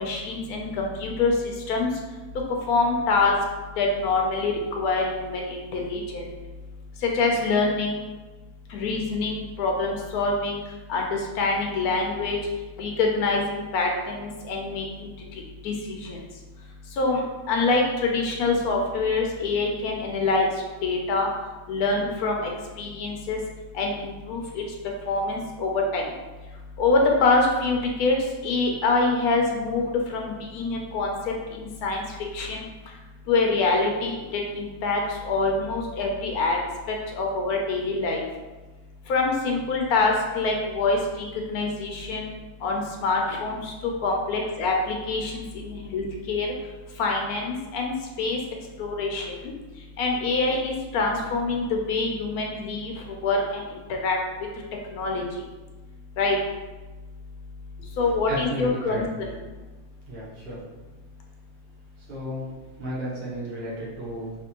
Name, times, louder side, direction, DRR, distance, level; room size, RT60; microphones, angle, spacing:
voice 1, 0.0-1.3 1.7-1.9 2.7-3.3 3.8-6.2 7.1-8.0 8.7-10.6 10.9-11.1 11.4-12.4 12.8-15.1 15.6-16.2 17.0-17.2 17.5-20.5 20.8-21.3 21.7-22.5 22.8-23.4 23.7-24.6 25.1-26.0 26.8-28.2 28.4-29.8 30.1-31.1 31.6-32.0 32.3-32.6 33.3-35.0 35.2-36.6 36.9-38.2 39.1-42.3 42.6-43.6 44.0-45.4 45.7-46.5 47.0-48.4 48.8-49.3 50.0-52.9 53.2-53.6 53.9-54.2 54.9-55.2 56.2-56.4 58.0-59.3, left 3 dB, 90° left, 0 dB, 1.1 m, -25 dB
voice 2, 58.3-59.0 60.1-60.6 62.1-62.4 62.8-64.3, equal, 45° right, -8 dB, 1.3 m, -33 dB
3.3 x 2.9 x 2.9 m, 1.2 s
omnidirectional pair, 1.6 m